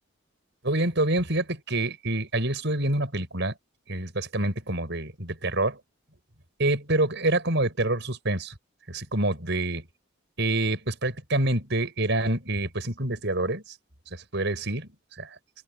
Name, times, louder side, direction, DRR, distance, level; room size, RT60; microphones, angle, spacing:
voice 1, 0.6-3.5 3.9-5.8 6.6-8.5 8.9-9.9 10.4-13.7 14.1-14.9 15.2-15.3, right 2 dB, 55° right, 6.4 m, -27 dB
open air
head